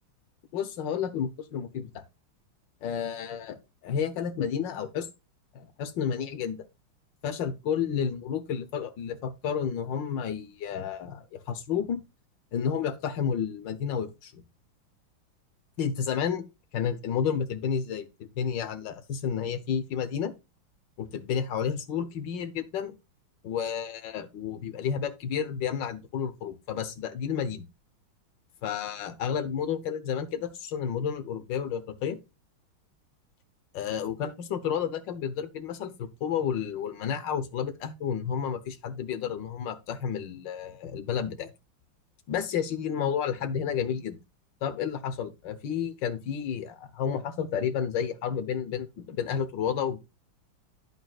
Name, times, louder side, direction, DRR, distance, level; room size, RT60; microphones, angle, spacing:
voice 1, 0.5-2.0 2.8-5.1 5.5-6.6 7.2-12.0 12.5-14.4 15.8-16.5 16.7-20.3 21.0-22.9 23.4-27.7 28.6-32.2 33.7-41.5 42.3-44.2 44.6-50.0, left 7 dB, 65° left, 1.6 m, -31 dB
11.0 x 7.6 x 2.4 m
omnidirectional pair, 2.3 m